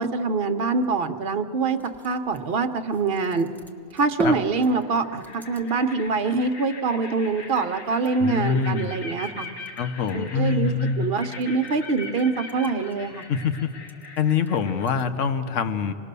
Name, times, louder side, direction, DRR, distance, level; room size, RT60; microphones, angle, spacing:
voice 1, 0.0-1.8 2.0-3.5 3.9-9.5 10.1-10.7 11.0-13.2, right 4 dB, 50° right, 8 dB, 1.1 m, -24 dB
sound 1, 1.5-15.1, equal, ahead, 0.9 m, -45 dB
sound 2, 2.1-2.6 4.1-4.2 4.6-15.0, left 4 dB, 90° left, 1.7 m, -41 dB
voice 2, 8.2-8.9 9.8-11.1 13.3-13.7 14.2-15.9, left 6 dB, 75° left, 10 dB, 1.3 m, -24 dB
26.0 x 20.0 x 6.8 m, 2.3 s
omnidirectional pair, 1.3 m